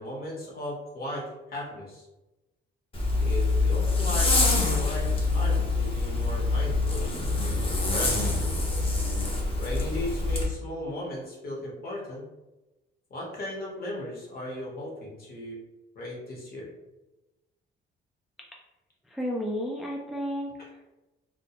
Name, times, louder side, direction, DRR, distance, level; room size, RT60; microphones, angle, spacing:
voice 1, 0.0-2.1 3.2-7.1 7.7-8.4 9.5-12.3 13.1-15.6 15.9-16.7, left 1 dB, 50° left, -3 dB, 0.9 m, -36 dB
Zipper (clothing), 2.9-10.5, left 3 dB, 30° left, 0.7 m, -25 dB
voice 2, 19.1-20.9, equal, ahead, -2 dB, 0.3 m, -33 dB
2.2 x 2.1 x 2.8 m, 1.0 s
cardioid pair, 90°, 20 cm